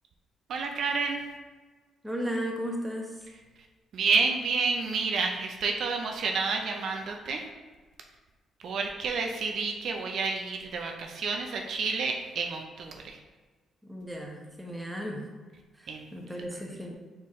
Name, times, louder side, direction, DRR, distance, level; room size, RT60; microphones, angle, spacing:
voice 1, 0.5-1.2 3.9-7.4 8.6-13.2 15.9-16.1, right 4 dB, 65° right, 2 dB, 0.5 m, -29 dB
voice 2, 2.0-3.3 13.8-15.2 15.7-16.9, equal, 5° right, -1 dB, 0.9 m, -35 dB
4.4 x 3.6 x 3.1 m, 1.4 s
cardioid pair, 90°, 0 cm